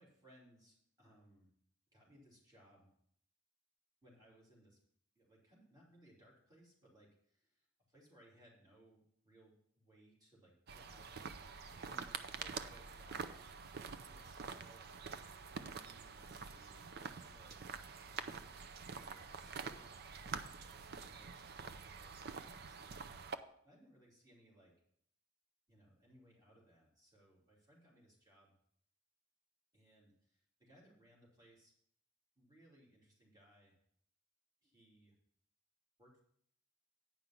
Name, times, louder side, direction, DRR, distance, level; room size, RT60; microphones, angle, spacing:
voice 1, 0.0-1.5 1.9-2.9 4.0-4.8 5.1-11.4 11.8-13.4 14.1-14.9 15.5-17.7 18.1-19.9 20.3-24.8 25.7-28.5 29.7-31.7 32.4-33.7 34.6-35.2 36.0-36.2, equal, 20° right, -4 dB, 2.9 m, -66 dB
sound 1, 10.7-23.4, right 5 dB, 50° right, 0.5 m, -47 dB
9.5 x 5.3 x 5.8 m, 0.66 s
head